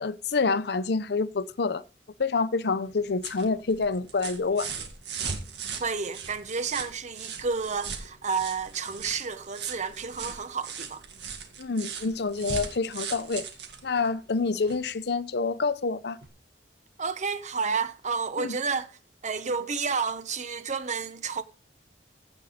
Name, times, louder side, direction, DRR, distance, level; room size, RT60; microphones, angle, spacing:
voice 1, 0.0-1.8 2.2-4.7 11.6-13.4 13.8-16.2 18.4-18.6, left 4 dB, 65° left, 0.6 m, -27 dB
sound 1, 2.8-14.9 16.2-16.3, right 6 dB, 75° right, 2.0 m, -39 dB
voice 2, 5.8-11.0 17.0-18.9 19.2-21.4, right 5 dB, 45° right, 1.0 m, -30 dB
15.5 x 5.4 x 5.1 m
head